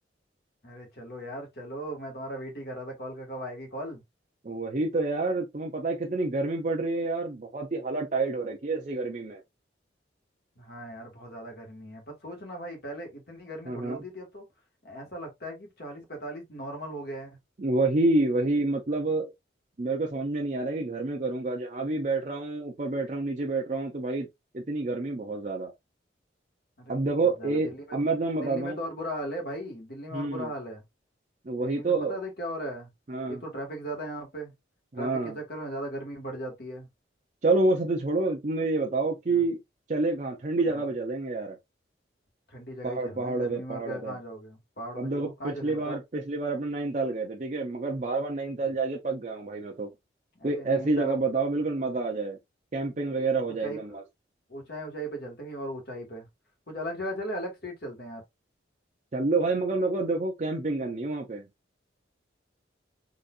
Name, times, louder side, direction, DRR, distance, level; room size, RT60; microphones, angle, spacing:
voice 1, 0.6-4.0 10.6-14.4 14.8-17.4 26.8-26.9 27.2-28.0 28.4-30.8 31.6-32.9 33.3-34.5 35.0-36.9 39.3-39.5 40.7-40.8 42.5-46.0 48.6-48.7 50.3-51.2 53.3-54.0 54.5-56.3 56.7-58.2, equal, 55° left, 1.4 m, -38 dB
voice 2, 4.4-9.4 13.7-14.0 17.6-19.3 19.8-24.3 24.5-25.7 26.9-28.8 30.1-30.5 31.4-32.1 33.1-33.4 34.9-35.4 37.4-39.6 39.9-41.6 42.8-44.2 45.0-49.9 50.4-52.4 52.7-54.0 59.1-61.4, right 3 dB, 40° right, 0.5 m, -28 dB
3.9 x 2.6 x 2.3 m
head